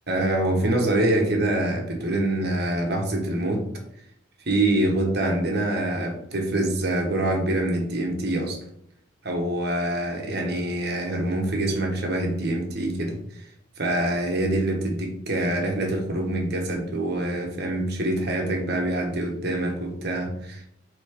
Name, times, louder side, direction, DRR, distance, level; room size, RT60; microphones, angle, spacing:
voice 1, 0.1-3.6 4.4-8.6 9.2-13.5 13.8-20.6, right 1 dB, 50° right, 2 dB, 1.3 m, -25 dB
8.4 x 3.8 x 3.6 m, 0.73 s
head